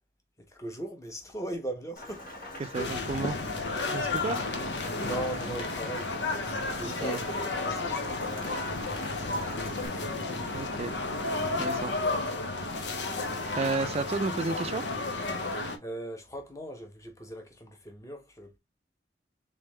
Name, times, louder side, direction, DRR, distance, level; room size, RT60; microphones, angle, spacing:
voice 1, 0.5-2.3 5.0-6.1 6.8-8.6 9.5-10.2 15.4-15.5 15.8-18.6, right 1 dB, 20° left, 1.0 m, -39 dB
Rain, 2.0-9.9, left 1 dB, 55° left, 1.6 m, -44 dB
voice 2, 2.6-3.4 3.9-4.4 6.8-7.2 10.5-10.9 11.6-11.9 12.8-12.9 13.6-14.8, right 4 dB, 35° right, 0.4 m, -32 dB
sound 1, 2.7-15.8, left 3 dB, 85° left, 0.8 m, -32 dB
3.7 x 3.4 x 3.2 m
head